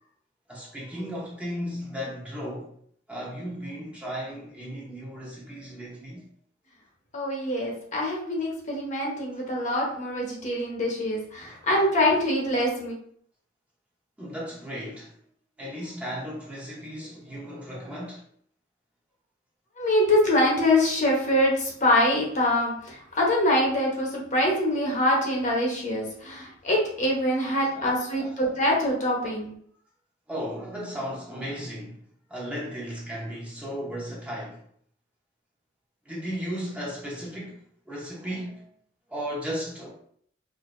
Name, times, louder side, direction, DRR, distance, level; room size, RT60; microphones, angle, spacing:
voice 1, 0.5-2.7 3.1-6.2 11.4-11.6 14.2-15.1 15.6-18.2 27.7-28.3 30.3-32.0 32.3-34.6 36.0-38.7 39.1-39.9, equal, 5° right, 0.9 m, -35 dB
voice 2, 7.1-12.9 19.8-29.5, left 1 dB, 40° left, 1.0 m, -24 dB
4.6 x 2.8 x 2.5 m
head